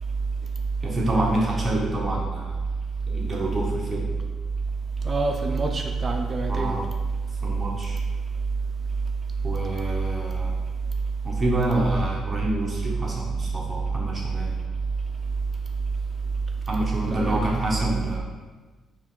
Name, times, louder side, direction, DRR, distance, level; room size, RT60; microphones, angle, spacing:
voice 1, 0.8-2.5 3.1-4.1 6.5-6.9 7.4-8.0 9.4-10.6 11.2-14.5 16.7-18.2, right 1 dB, 20° right, -4 dB, 0.8 m, -27 dB
voice 2, 5.0-6.8 17.1-17.4 17.8-17.9, right 3 dB, 35° right, 3 dB, 0.4 m, -25 dB
4.5 x 2.4 x 3.7 m, 1.3 s
cardioid pair, 90°, 0 cm